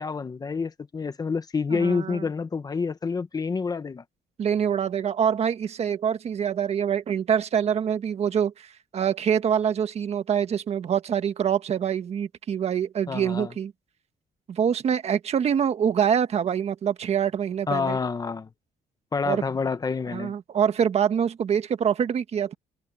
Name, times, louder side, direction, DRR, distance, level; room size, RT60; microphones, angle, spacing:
voice 1, 0.0-4.0 13.1-13.5 17.7-18.5 19.1-20.3, left 5 dB, 25° left, 1.2 m, -28 dB
voice 2, 1.7-2.3 4.4-13.7 14.5-18.0 19.2-19.4 20.1-22.5, right 8 dB, 45° right, 1.5 m, -25 dB
open air
cardioid pair, 130°, 15 cm